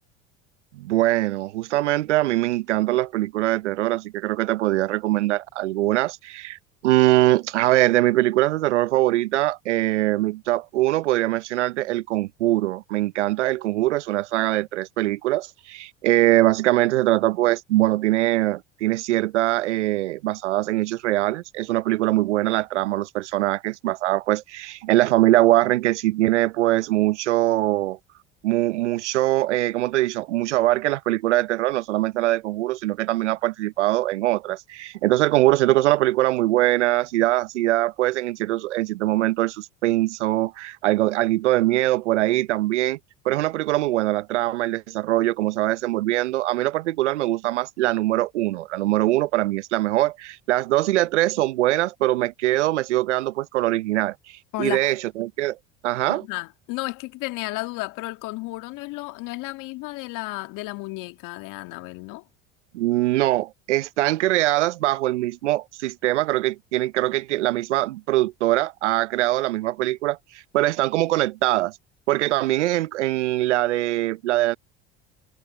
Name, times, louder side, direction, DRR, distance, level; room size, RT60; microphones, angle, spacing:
voice 1, 0.7-28.0 28.4-43.0 43.2-55.6 55.8-56.3 62.7-71.7 72.1-74.6, right 16 dB, 85° right, 0.8 m, -22 dB
voice 2, 54.5-54.9 56.1-62.2, left 22 dB, 60° left, 1.9 m, -33 dB
hypercardioid pair, 75°, 35 cm